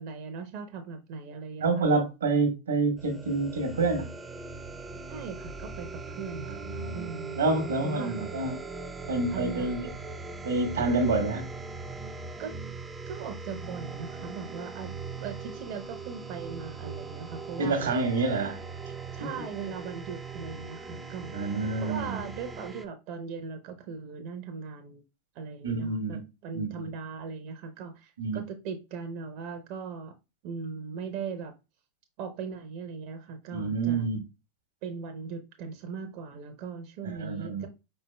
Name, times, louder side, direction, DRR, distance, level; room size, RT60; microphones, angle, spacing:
voice 1, 0.0-1.9 5.1-6.6 6.9-8.3 9.3-9.7 12.4-12.5 13.1-17.9 19.1-21.5 21.8-25.0 25.3-30.1 30.4-31.5 32.2-34.1 34.8-37.7, right 5 dB, 55° right, 0.7 m, -39 dB
voice 2, 1.6-4.1 6.5-8.6 9.1-9.9 10.4-11.5 17.6-18.6 19.2-19.3 21.3-22.2 25.6-26.2 26.5-26.9 28.2-28.4 33.5-34.2 37.0-37.7, right 3 dB, 80° right, 1.1 m, -28 dB
sound 1, 3.0-22.9, right 3 dB, 15° right, 0.6 m, -40 dB
5.1 x 4.3 x 2.2 m
hypercardioid pair, 90°, 0 cm